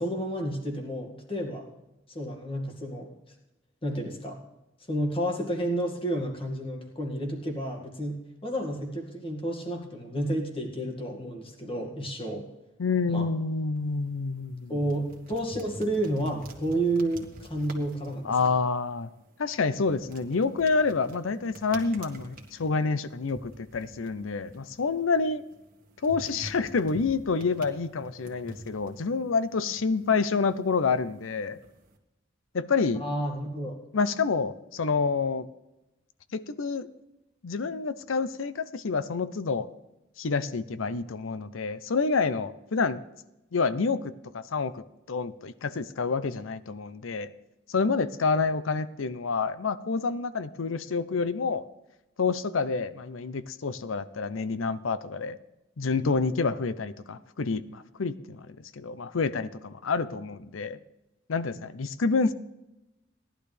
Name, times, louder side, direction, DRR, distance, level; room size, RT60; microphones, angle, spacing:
voice 1, 0.0-1.7 2.1-3.1 3.8-4.4 4.9-12.4 13.1-13.3 14.7-18.3 33.0-33.8, right 1 dB, 30° left, 1 dB, 2.1 m, -31 dB
voice 2, 12.8-14.7 18.2-19.1 19.4-25.4 26.0-31.6 32.5-33.0 33.9-35.5 36.3-36.9 37.4-39.7 40.2-43.0 43.5-44.8 45.1-47.3 47.7-51.6 52.2-55.4 55.8-60.8 61.3-62.3, left 4 dB, 80° left, 15 dB, 0.6 m, -28 dB
sound 1, 13.8-32.0, right 1 dB, 45° right, 1.6 m, -48 dB
18.0 x 11.5 x 3.4 m, 0.94 s
head